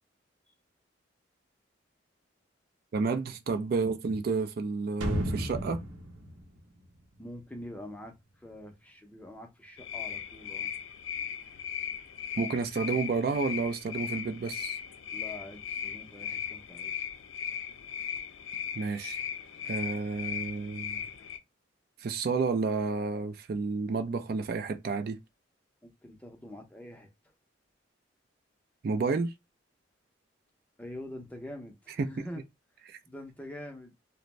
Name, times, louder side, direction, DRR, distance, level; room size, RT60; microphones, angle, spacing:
voice 1, 2.9-5.8 12.4-14.8 18.7-19.2 19.6-21.0 22.0-25.2 28.8-29.3 32.0-32.1 32.9-33.0, right 4 dB, 50° right, 0.3 m, -30 dB
sound 1, 5.0-7.8 8.1-8.2, equal, 80° right, 0.7 m, -34 dB
voice 2, 7.2-10.7 15.1-17.0 25.8-27.1 30.8-32.4 33.1-33.9, left 1 dB, 5° left, 0.5 m, -45 dB
sound 2, 9.8-21.4, left 8 dB, 90° left, 0.4 m, -38 dB
2.5 x 2.0 x 3.1 m
head